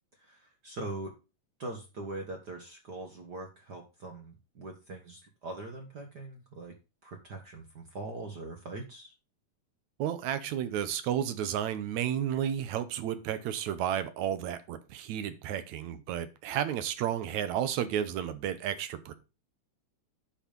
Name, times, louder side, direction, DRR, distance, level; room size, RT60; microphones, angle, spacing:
voice 1, 0.2-1.1 1.6-6.7 7.0-9.1, right 2 dB, 50° right, 3 dB, 1.2 m, -42 dB
voice 2, 10.0-19.1, right 10 dB, 70° right, 12 dB, 2.1 m, -32 dB
10.0 x 5.0 x 5.2 m, 0.29 s
omnidirectional pair, 3.6 m